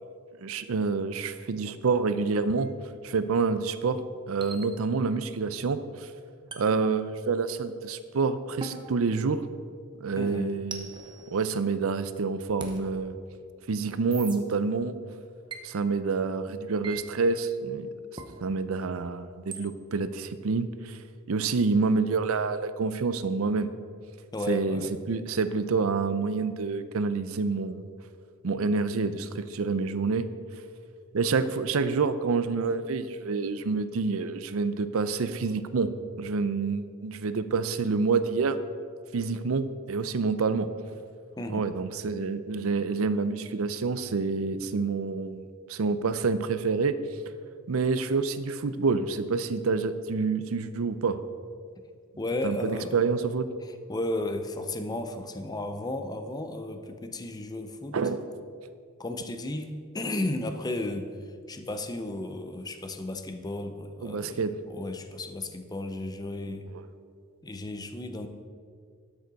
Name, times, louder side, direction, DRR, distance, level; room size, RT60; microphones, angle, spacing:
voice 1, 0.4-2.7 3.0-4.0 4.3-5.8 6.6-9.4 10.0-10.9 11.3-13.2 13.7-14.9 15.6-17.9 18.4-21.0 21.3-23.7 24.5-24.8 25.1-27.9 28.4-30.3 31.1-35.9 36.2-38.6 39.1-40.7 41.5-47.0 47.7-51.2 52.4-53.5 57.9-58.2 64.0-64.5, right 4 dB, 75° right, 12 dB, 0.5 m, -27 dB
sound 1, 2.6-2.7 4.4-5.2 6.5-7.6 8.6-9.9 10.7-12.0 12.6-12.8 14.1-14.4 15.5-15.7 16.8-17.0 18.2-18.4 19.5-19.7, right 4 dB, 20° right, 0.8 m, -43 dB
voice 2, 10.2-10.6 24.3-25.0 41.4-41.7 52.2-53.0 53.6-58.0 59.0-61.1 61.5-66.7 67.4-68.3, left 1 dB, 20° left, 7 dB, 0.6 m, -34 dB
12.5 x 6.7 x 4.1 m, 2.1 s
head